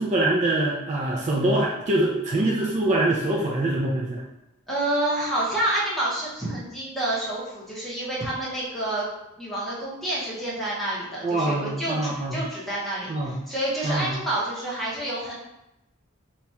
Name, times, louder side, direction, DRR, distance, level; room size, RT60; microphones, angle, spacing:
voice 1, 0.0-4.2 11.2-12.3 13.1-13.4 13.8-14.1, right 1 dB, 35° right, -3 dB, 0.4 m, -24 dB
voice 2, 4.7-9.1 9.4-15.3, right 1 dB, ahead, -7 dB, 0.9 m, -28 dB
2.9 x 2.3 x 4.2 m, 0.92 s
head